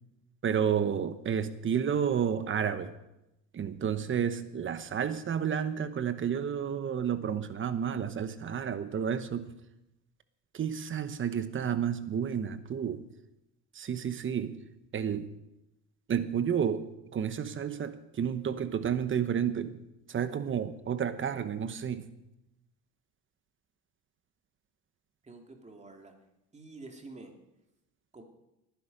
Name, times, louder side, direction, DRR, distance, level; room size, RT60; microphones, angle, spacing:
voice 1, 0.4-2.9 3.5-9.5 10.5-13.1 13.7-14.6 14.9-15.3 16.1-16.8 17.1-19.8 20.1-22.1, right 8 dB, 40° right, 1.0 m, -31 dB
voice 2, 25.2-26.1 26.5-27.3 28.1-28.2, right 3 dB, 20° right, 2.4 m, -48 dB
20.0 x 10.5 x 5.3 m
cardioid pair, 125°, 33 cm